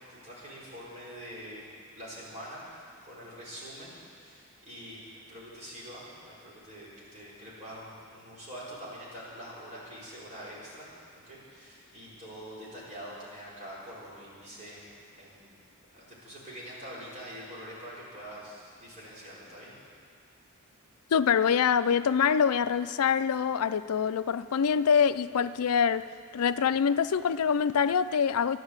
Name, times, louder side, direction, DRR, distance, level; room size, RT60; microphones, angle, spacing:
voice 1, 0.0-1.7 1.9-5.0 5.3-10.9 11.2-15.6 15.9-19.8, equal, 35° right, -7 dB, 4.7 m, -45 dB
voice 2, 21.1-26.1 26.3-28.6, left 7 dB, 75° left, 14 dB, 0.4 m, -25 dB
12.0 x 11.0 x 8.1 m, 2.2 s
head